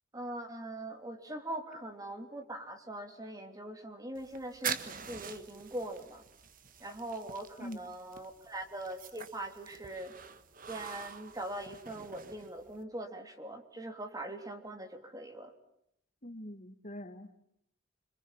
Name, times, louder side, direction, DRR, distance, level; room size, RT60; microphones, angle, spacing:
voice 1, 0.1-6.2 6.8-10.1 10.7-15.5, right 1 dB, 20° right, 6 dB, 3.3 m, -42 dB
sound 1, 4.1-12.8, right 7 dB, 45° right, 1.6 m, -45 dB
voice 2, 16.2-17.3, equal, 40° left, 8 dB, 2.0 m, -43 dB
26.5 x 26.0 x 7.3 m, 0.75 s
head